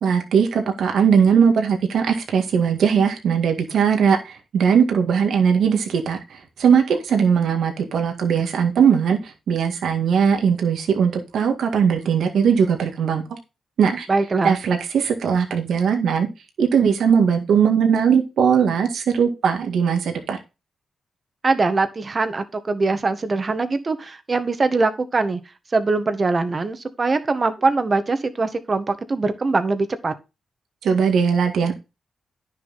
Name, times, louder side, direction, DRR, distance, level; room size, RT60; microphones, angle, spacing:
voice 1, 0.0-13.4 13.8-14.1 14.4-16.3 16.6-20.4 30.8-31.7, right 7 dB, 75° right, 1.9 m, -19 dB
voice 2, 14.1-14.5 21.4-25.4 25.7-30.1, right 3 dB, 45° right, 1.6 m, -22 dB
10.0 x 6.8 x 4.1 m
supercardioid pair, 45°, 0 cm